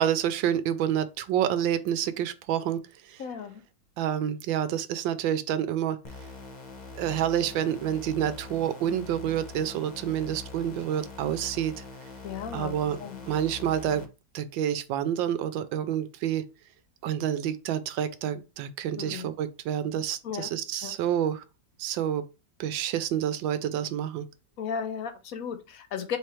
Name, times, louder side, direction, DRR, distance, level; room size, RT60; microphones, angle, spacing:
voice 1, 0.0-2.8 3.1-3.2 4.0-6.0 6.9-11.8 12.5-13.0 13.3-14.0 14.3-16.4 17.0-21.4 21.8-22.2 22.6-24.3, right 10 dB, 90° right, 1.3 m, -28 dB
voice 2, 3.2-3.6 12.2-13.2 19.0-19.3 20.2-20.5 20.8-21.0 24.6-26.2, left 7 dB, 65° left, 0.9 m, -35 dB
sound 1, 6.0-14.0, left 3 dB, 50° left, 0.5 m, -43 dB
4.4 x 3.8 x 3.0 m
omnidirectional pair, 2.0 m